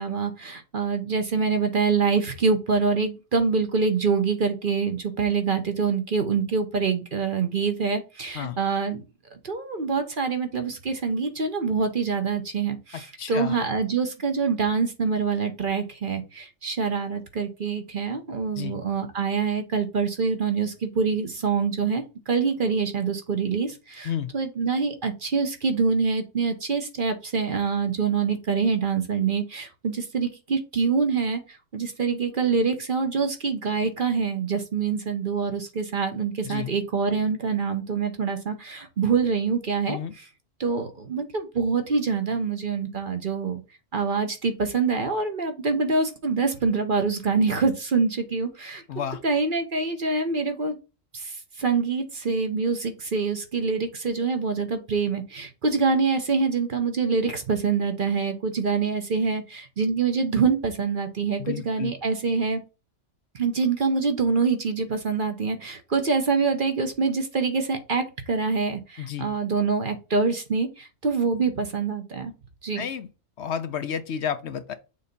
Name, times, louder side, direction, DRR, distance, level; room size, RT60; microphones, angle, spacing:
voice 1, 0.0-9.0 9.3-40.0 40.6-43.6 43.9-48.8 49.2-50.8 51.1-62.6 63.3-72.3 72.6-72.8, right 5 dB, 45° right, 0.9 m, -25 dB
voice 2, 12.9-13.6 18.6-18.8 24.0-24.3 36.4-36.7 39.9-40.1 48.9-49.2 61.4-61.9 69.0-69.3 72.7-73.1 73.4-74.7, left 8 dB, 65° left, 0.8 m, -31 dB
6.6 x 2.8 x 5.2 m
omnidirectional pair, 1.4 m